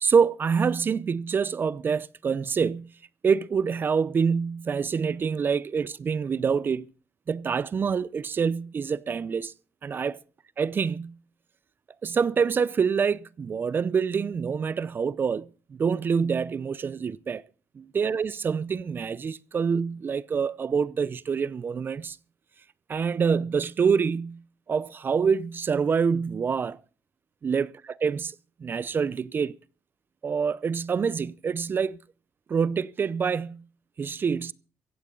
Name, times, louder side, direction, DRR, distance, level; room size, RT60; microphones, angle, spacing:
voice 1, 0.0-2.9 3.2-6.9 7.3-9.5 9.8-10.2 10.6-11.2 12.0-17.4 17.9-22.2 22.9-24.4 24.7-26.8 27.4-27.7 28.0-28.3 28.6-29.6 30.2-32.0 32.5-33.6 34.0-34.5, right 6 dB, 40° right, 0.6 m, -26 dB
15.5 x 15.5 x 3.9 m
cardioid pair, 105°, 5 cm